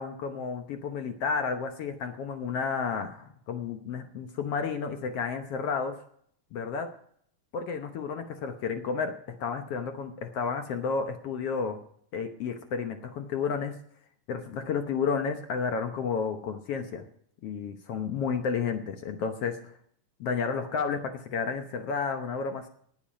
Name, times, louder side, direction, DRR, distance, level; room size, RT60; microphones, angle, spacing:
voice 1, 0.0-6.0 6.5-6.9 7.5-11.8 12.1-13.8 14.3-17.0 17.4-19.6 20.2-22.7, left 5 dB, 65° left, 6 dB, 1.6 m, -31 dB
19.0 x 7.4 x 5.2 m, 0.64 s
omnidirectional pair, 3.8 m